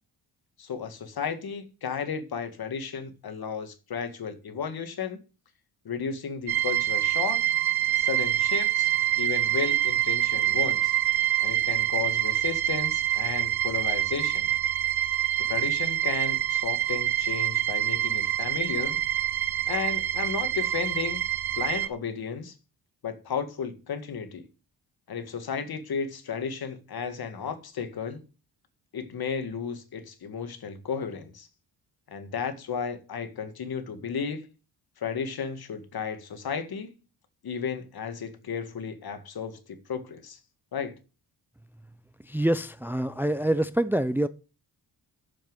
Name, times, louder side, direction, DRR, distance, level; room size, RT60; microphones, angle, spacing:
voice 1, 0.6-5.2 5.8-7.4 7.9-10.9 11.4-14.5 15.5-19.0 19.7-21.2 21.6-22.5 23.0-24.4 25.1-28.2 28.9-31.5 32.1-34.5 35.0-36.9 37.4-40.4 40.7-40.9, left 6 dB, 60° left, 2.0 m, -33 dB
sound 1, 6.5-21.9, right 13 dB, 65° right, 0.9 m, -26 dB
voice 2, 42.3-44.3, right 1 dB, 5° right, 0.6 m, -26 dB
7.4 x 7.2 x 7.8 m
cardioid pair, 90°, 42 cm